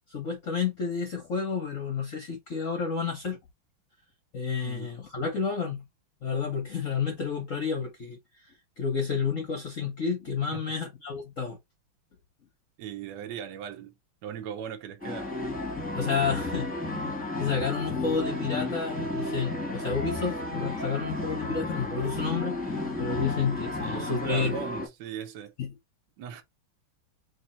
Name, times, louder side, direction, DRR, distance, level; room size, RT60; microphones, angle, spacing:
voice 1, 0.1-3.4 4.3-5.8 6.2-8.2 8.8-11.6 15.9-16.7 17.4-24.5 25.6-25.8, left 5 dB, 55° left, 0.9 m, -30 dB
voice 2, 12.8-13.9 14.2-15.3 23.1-23.4 23.8-25.5 26.2-26.4, right 8 dB, 65° right, 1.3 m, -39 dB
sound 1, 15.0-24.9, left 2 dB, 5° left, 1.0 m, -33 dB
3.3 x 3.2 x 4.3 m
omnidirectional pair, 2.4 m